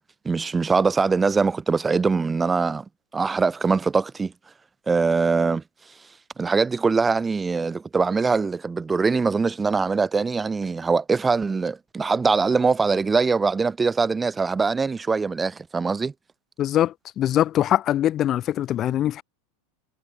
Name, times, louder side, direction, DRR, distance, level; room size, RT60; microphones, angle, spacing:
voice 1, 0.2-2.8 3.1-4.3 4.9-5.6 6.4-16.1, right 4 dB, 15° right, 4.1 m, -22 dB
voice 2, 16.6-19.2, left 12 dB, 35° left, 3.5 m, -22 dB
hypercardioid pair, 110°, 0 cm